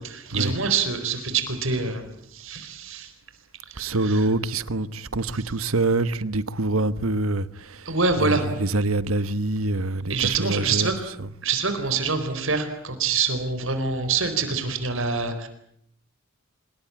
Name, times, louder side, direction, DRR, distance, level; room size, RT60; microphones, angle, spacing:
voice 1, 0.0-2.1 2.3-3.1 3.7-4.3 7.8-8.4 10.1-10.9 11.4-15.5, right 4 dB, 70° right, 4.4 m, -25 dB
voice 2, 3.8-11.3, right 2 dB, 85° right, 1.3 m, -26 dB
25.5 x 22.5 x 8.8 m
head